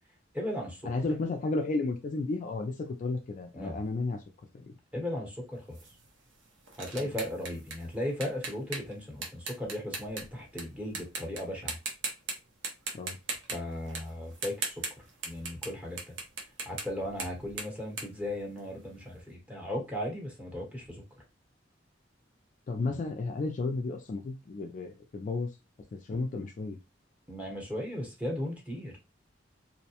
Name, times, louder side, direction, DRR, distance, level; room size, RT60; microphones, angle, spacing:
voice 1, 0.3-0.9 3.5-3.8 4.9-5.8 6.8-11.8 13.5-14.8 15.2-16.2 16.6-21.0 26.1-26.2 27.3-28.9, left 1 dB, 10° right, -1 dB, 0.8 m, -36 dB
voice 2, 0.9-4.2 4.5-4.7 7.0-7.1 12.9-13.2 22.7-25.5 25.9-26.8, left 3 dB, 40° left, 4 dB, 0.3 m, -33 dB
sound 1, 5.7-10.6 10.9-11.4 11.7-12.3 12.6-15.7 16.0-19.0, right 4 dB, 85° right, 0.7 m, -38 dB
2.6 x 2.0 x 2.8 m, 0.26 s
head